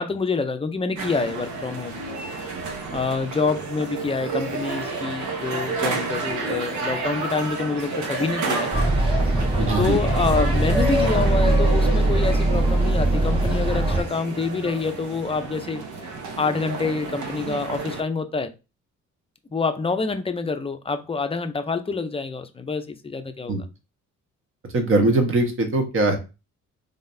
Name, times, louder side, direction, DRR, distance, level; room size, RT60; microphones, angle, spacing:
voice 1, 0.0-2.0 2.4-2.6 2.9-8.7 9.8-15.8 16.4-18.5 19.5-23.6, left 4 dB, 20° left, 0.5 m, -26 dB
sound 1, 1.0-18.0, right 3 dB, 75° right, 1.0 m, -31 dB
sound 2, 8.7-14.0, right 1 dB, 15° right, 1.5 m, -21 dB
voice 2, 9.6-10.0 23.5-23.6 24.7-26.2, right 2 dB, 45° right, 1.3 m, -21 dB
3.8 x 3.5 x 2.6 m
cardioid pair, 90°, 30 cm